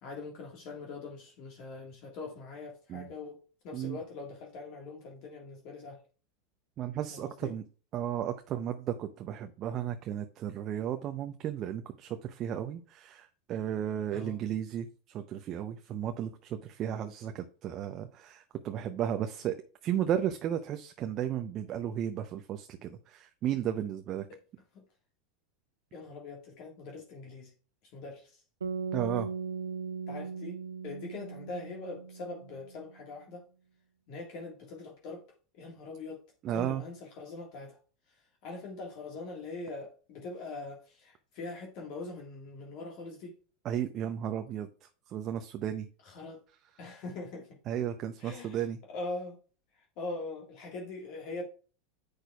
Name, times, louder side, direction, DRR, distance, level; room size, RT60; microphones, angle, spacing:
voice 1, 0.0-3.4 3.6-6.0 7.1-7.5 14.1-14.4 24.7-24.8 25.9-27.5 27.9-28.4 30.1-30.6 30.8-33.4 34.1-35.2 35.5-36.2 36.5-37.8 38.4-43.3 46.1-46.4 46.8-47.6 48.2-48.6 48.9-49.4 50.0-51.4, left 3 dB, 50° left, 1.8 m, -42 dB
voice 2, 6.8-7.6 7.9-19.6 19.8-24.2 28.9-29.3 36.4-36.8 43.6-44.7 45.1-45.9 47.7-48.8, right 10 dB, 40° right, 0.7 m, -34 dB
sound 1, 28.6-32.8, right 5 dB, 80° right, 0.4 m, -38 dB
9.9 x 6.5 x 2.4 m
figure-of-eight pair, 85°, 0 cm